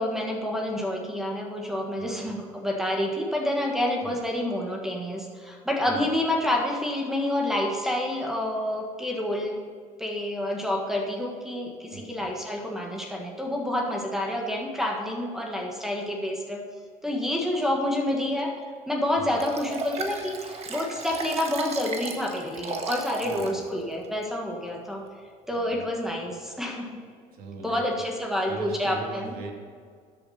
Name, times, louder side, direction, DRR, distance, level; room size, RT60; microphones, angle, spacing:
voice 1, 0.0-9.6 10.0-16.6 17.0-18.5 18.9-25.0 25.5-27.0 27.6-29.4, left 1 dB, 5° right, 0 dB, 1.7 m, -28 dB
voice 2, 2.0-2.4 4.0-4.2 5.8-6.2 11.9-12.3 19.2-19.4 23.2-23.8 25.5-25.8 27.3-27.8 28.5-29.5, right 2 dB, 65° right, 2 dB, 2.3 m, -41 dB
Liquid, 19.4-23.6 24.0-24.1, right 4 dB, 40° right, 1.5 m, -35 dB
13.0 x 8.5 x 4.3 m, 2.1 s
cardioid pair, 115°, 16 cm